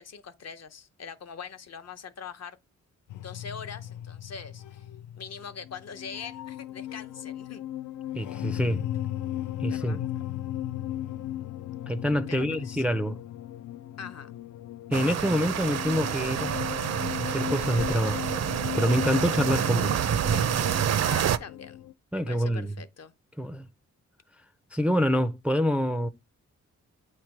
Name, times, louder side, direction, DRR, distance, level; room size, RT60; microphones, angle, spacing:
voice 1, 0.0-2.6 3.1-4.9 5.1-7.7 9.7-10.2 12.3-12.8 14.0-14.3 21.0-21.8 22.2-23.1, left 6 dB, 60° left, 0.7 m, -42 dB
sound 1, 3.1-21.9, left 13 dB, 90° left, 0.5 m, -37 dB
voice 2, 8.1-8.8 9.6-10.0 11.9-13.2 14.9-16.6 17.2-18.3 18.8-20.0 22.1-22.7 23.4-23.7 24.7-26.1, equal, 5° right, 0.3 m, -26 dB
sound 2, 14.9-21.4, right 9 dB, 60° right, 0.5 m, -28 dB
8.7 x 3.2 x 5.9 m
wide cardioid pair, 160°, 30 cm